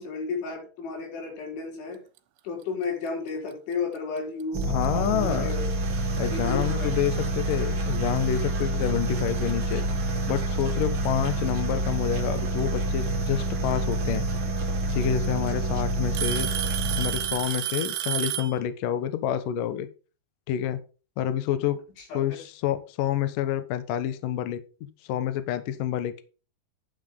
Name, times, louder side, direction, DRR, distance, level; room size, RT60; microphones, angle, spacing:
voice 1, 0.0-2.0 2.4-5.7 6.2-7.2 22.0-22.4, left 4 dB, 80° left, 1 dB, 6.8 m, -33 dB
sound 1, 4.5-17.5, right 2 dB, 45° right, 1.6 m, -28 dB
voice 2, 4.6-5.5 6.2-9.8 10.3-14.3 14.9-16.5 17.0-19.9 20.5-20.8 21.2-21.8 22.1-24.6 25.1-26.2, left 10 dB, 65° left, 11 dB, 2.2 m, -28 dB
Alarm / Tick-tock, 4.6-4.9 5.7-5.8 6.6-6.7 8.4-8.5 9.7-9.8 11.1-11.5 13.3-13.4 14.6-14.7 15.0-15.5 16.1-18.6, right 12 dB, 90° right, 3.5 m, -31 dB
11.5 x 9.3 x 3.6 m, 0.34 s
omnidirectional pair, 5.3 m